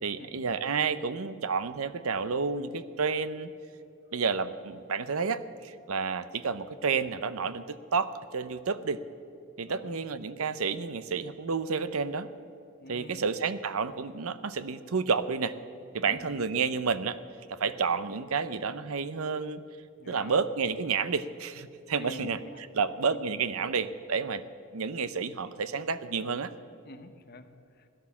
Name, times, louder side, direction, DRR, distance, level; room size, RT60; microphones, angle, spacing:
voice 1, 0.0-3.5 4.1-9.0 9.6-12.3 12.9-15.5 15.9-17.2 17.5-19.6 20.1-22.4 22.7-24.4 24.7-26.5, right 5 dB, 80° right, 13 dB, 0.7 m, -30 dB
voice 2, 12.8-13.2 16.0-16.4 20.0-20.4 22.0-23.2 26.8-27.9, left 2 dB, 45° left, 8 dB, 0.9 m, -47 dB
16.5 x 11.0 x 7.2 m, 2.7 s
head